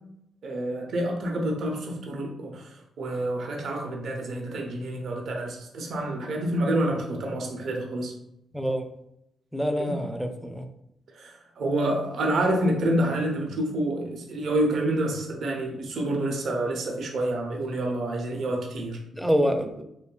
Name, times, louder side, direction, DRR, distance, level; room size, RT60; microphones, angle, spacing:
voice 1, 0.4-8.1 9.8-10.0 11.2-19.0, right 1 dB, 65° right, 1 dB, 0.4 m, -28 dB
voice 2, 8.5-8.9 9.5-10.7 19.1-19.8, equal, 5° right, 6 dB, 0.4 m, -26 dB
2.6 x 2.2 x 2.3 m, 0.80 s
hypercardioid pair, 45°, 0 cm